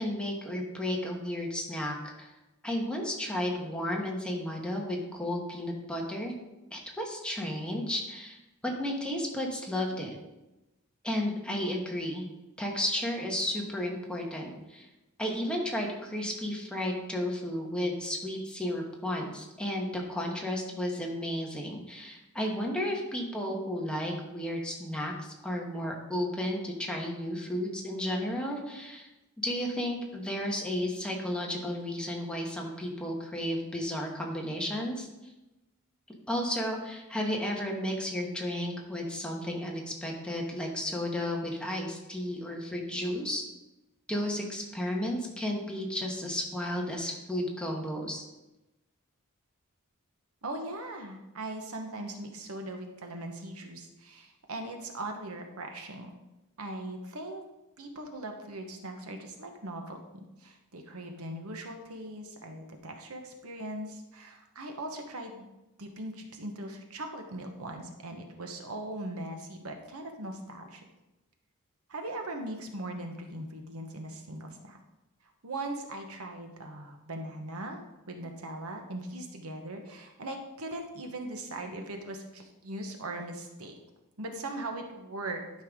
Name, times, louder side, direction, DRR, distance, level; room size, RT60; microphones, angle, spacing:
voice 1, 0.0-2.3 2.6-6.3 6.7-8.4 8.8-10.2 11.0-12.2 12.6-14.9 15.2-29.1 29.4-35.3 36.3-43.4 44.1-48.2, left 1 dB, 5° left, -1 dB, 1.3 m, -33 dB
voice 2, 50.4-56.1 56.6-57.4 57.8-65.5 65.8-70.8 71.9-74.8 75.4-77.8 78.1-83.7 84.2-85.4, right 1 dB, 70° right, 4 dB, 1.1 m, -40 dB
11.5 x 5.6 x 3.7 m, 0.99 s
head